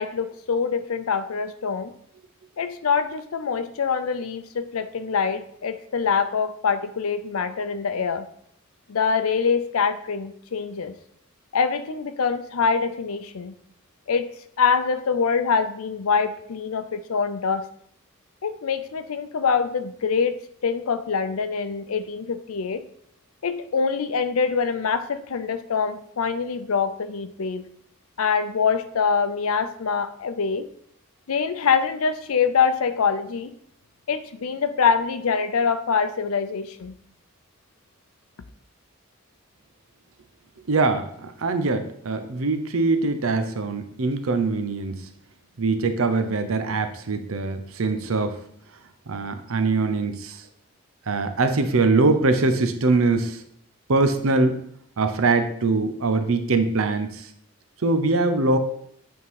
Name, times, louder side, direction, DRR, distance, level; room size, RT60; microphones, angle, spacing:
voice 1, 0.0-1.9 2.6-8.3 8.9-10.9 11.5-13.5 14.1-14.3 14.6-17.7 18.4-22.8 23.4-27.6 28.2-30.6 31.3-33.5 34.1-36.9, left 5 dB, 85° left, 10 dB, 0.5 m, -24 dB
voice 2, 40.7-45.0 45.6-48.3 49.1-50.4 51.1-53.4 53.9-54.6 55.0-57.3 57.8-58.6, right 3 dB, 75° right, 9 dB, 0.7 m, -22 dB
8.4 x 3.7 x 4.7 m, 0.67 s
head